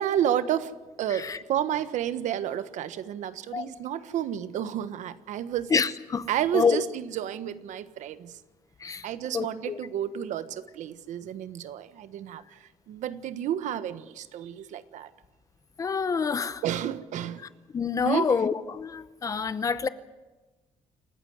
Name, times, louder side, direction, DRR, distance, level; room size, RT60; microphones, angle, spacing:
voice 1, 0.0-5.7 6.3-8.4 9.0-15.1 16.6-17.4 18.0-18.3, right 10 dB, 75° right, 12 dB, 1.4 m, -31 dB
voice 2, 5.7-6.3 6.5-6.8 8.8-9.1 9.3-9.8 15.8-16.6 17.7-19.9, left 5 dB, 25° left, 14 dB, 0.8 m, -27 dB
28.5 x 15.0 x 8.1 m, 1.2 s
cardioid pair, 175°, 13 cm